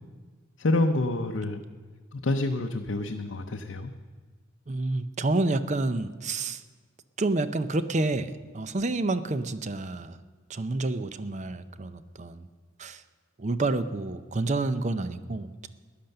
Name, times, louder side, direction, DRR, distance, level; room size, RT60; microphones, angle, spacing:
voice 1, 0.6-1.6 2.1-3.9, left 2 dB, 65° left, 3 dB, 0.6 m, -27 dB
voice 2, 4.7-6.6 7.2-10.2 10.5-12.5 12.8-13.0 13.4-15.7, right 2 dB, 35° right, 13 dB, 0.6 m, -29 dB
13.5 x 10.5 x 6.6 m, 1.5 s
head